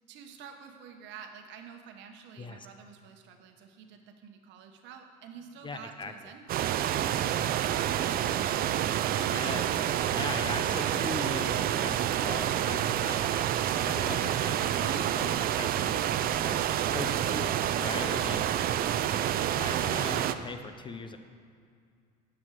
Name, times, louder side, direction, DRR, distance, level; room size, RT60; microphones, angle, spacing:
voice 1, 0.1-8.9, right 7 dB, 65° right, 5 dB, 1.1 m, -49 dB
voice 2, 5.6-6.1 9.3-13.3 13.8-16.0 16.4-17.5 17.8-18.5 19.5-21.2, left 4 dB, 25° left, 8 dB, 0.7 m, -40 dB
sound 1, 6.5-20.4, right 11 dB, 50° right, 0.5 m, -28 dB
12.0 x 6.2 x 4.8 m, 2.2 s
supercardioid pair, 85°, 20 cm